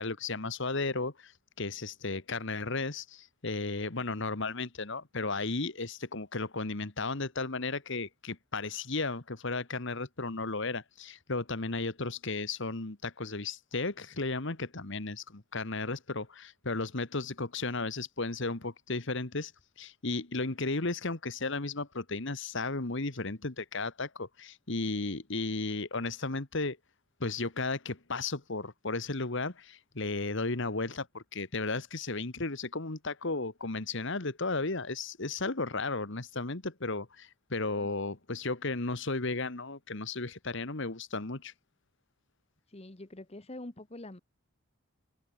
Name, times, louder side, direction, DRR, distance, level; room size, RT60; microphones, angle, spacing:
voice 1, 0.0-1.3 1.6-19.5 19.8-26.8 27.2-41.5, left 3 dB, 60° left, 1.6 m, -34 dB
voice 2, 42.7-44.2, left 1 dB, 30° left, 1.1 m, -45 dB
head